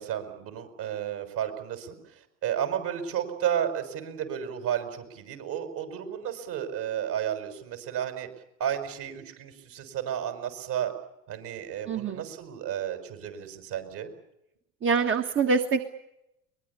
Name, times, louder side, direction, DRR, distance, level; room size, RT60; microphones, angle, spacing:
voice 1, 0.0-2.0 2.4-8.3 8.6-10.9 11.3-14.1, right 9 dB, 55° right, 7 dB, 6.2 m, -32 dB
voice 2, 11.9-12.3 14.8-15.8, right 5 dB, 30° right, 4 dB, 1.8 m, -25 dB
23.5 x 20.5 x 8.5 m, 0.84 s
hypercardioid pair, 80°, 39 cm